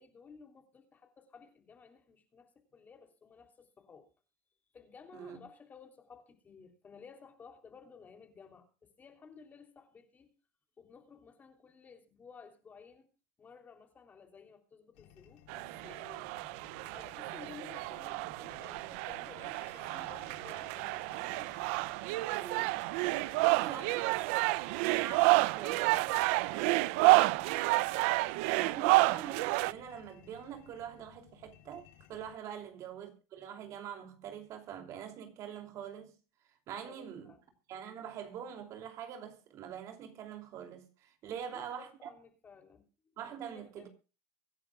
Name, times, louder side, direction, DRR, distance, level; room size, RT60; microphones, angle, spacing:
voice 1, 0.0-4.1 4.7-10.3 10.8-13.1 13.4-16.3 16.9-21.5 23.1-24.6 26.7-27.1 32.5-32.7 36.7-37.4 41.3-42.9 43.3-43.9, left 5 dB, 25° left, 3.3 m, -55 dB
sound 1, 14.9-32.3, left 12 dB, 75° left, 3.6 m, -59 dB
sound 2, 15.5-29.7, right 22 dB, 75° right, 0.5 m, -30 dB
voice 2, 22.3-22.9 23.4-23.8 24.8-26.1 26.5-27.4 28.5-36.1 36.7-37.3 37.7-42.1 43.2-43.9, right 9 dB, 45° right, 2.9 m, -44 dB
24.0 x 10.5 x 2.4 m
supercardioid pair, 130°, 7 cm